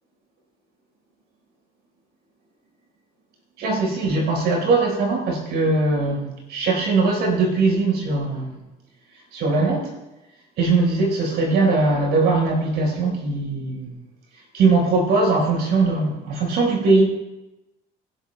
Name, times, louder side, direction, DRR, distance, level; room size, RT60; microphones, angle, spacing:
voice 1, 3.6-8.6 9.3-9.9 10.6-13.9 14.5-17.1, right 3 dB, 80° right, -1 dB, 5.2 m, -20 dB
28.5 x 12.0 x 2.3 m, 1.0 s
cardioid pair, 110°, 17 cm